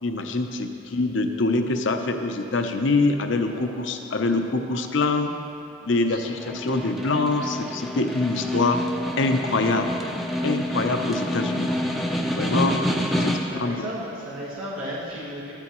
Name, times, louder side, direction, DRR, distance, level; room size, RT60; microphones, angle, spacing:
voice 1, 0.0-5.3 5.9-8.8 9.2-9.9 10.4-11.7 12.4-12.8 13.2-13.9, left 3 dB, 60° left, 5 dB, 0.7 m, -24 dB
voice 2, 3.5-3.9 5.8-6.4 13.5-15.5, equal, 80° right, -7 dB, 1.5 m, -35 dB
Snare drum, 6.2-13.7, left 1 dB, ahead, 0.6 m, -28 dB
13.5 x 12.0 x 3.1 m, 2.7 s
head